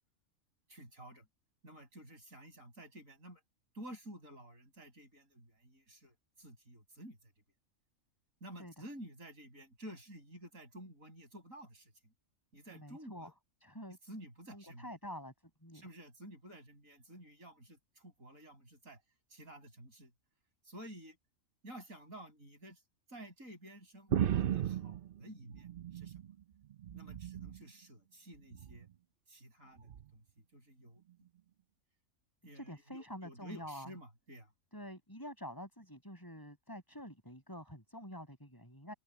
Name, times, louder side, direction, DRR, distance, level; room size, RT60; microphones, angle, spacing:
voice 1, 0.7-1.3 1.6-3.4 3.7-7.2 8.4-12.1 12.5-13.3 14.1-14.9 15.7-19.0 19.3-20.1 20.6-21.2 21.6-22.8 23.1-26.1 26.9-28.9 29.3-30.2 30.5-31.0 32.4-34.5, right 1 dB, 85° right, 8.4 m, -52 dB
voice 2, 12.7-13.3 13.6-14.0 14.5-15.3 15.6-15.8 32.5-33.9 34.7-38.9, equal, 15° left, 7.8 m, -47 dB
sound 1, 24.1-26.3 26.7-27.6 28.5-28.9 29.9-30.0, right 10 dB, 55° right, 0.7 m, -36 dB
omnidirectional pair, 1.4 m